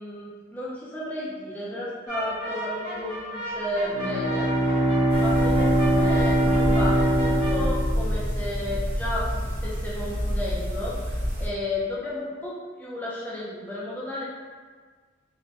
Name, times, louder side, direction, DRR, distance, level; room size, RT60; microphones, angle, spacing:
voice 1, 0.0-4.8 5.1-14.2, left 1 dB, 10° left, -7 dB, 0.4 m, -33 dB
sound 1, 2.1-7.5, right 1 dB, 80° right, 1.4 m, -35 dB
Bowed string instrument, 3.9-8.5, right 1 dB, 75° left, 0.5 m, -22 dB
sound 2, 5.1-11.5, equal, 55° right, 0.8 m, -28 dB
3.1 x 2.1 x 2.7 m, 1.5 s
head